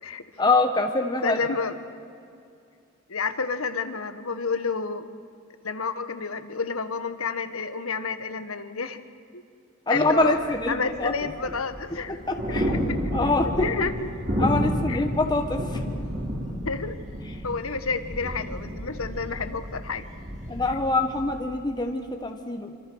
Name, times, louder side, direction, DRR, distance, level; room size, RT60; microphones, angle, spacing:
voice 1, 0.4-1.5 9.9-11.1 12.3-12.8 13.1-13.7 14.4-15.8 20.5-22.7, left 2 dB, 20° left, 4 dB, 1.3 m, -25 dB
voice 2, 1.2-1.8 3.1-5.1 5.6-9.0 9.3-9.4 9.9-10.4 10.7-12.2 12.5-13.3 13.6-14.1 14.4-15.0 16.6-17.0 17.4-20.1, left 4 dB, 85° left, 10 dB, 1.5 m, -30 dB
sound 1, 10.0-21.2, equal, 40° right, 6.3 m, -31 dB
27.0 x 25.5 x 6.4 m, 2.4 s
head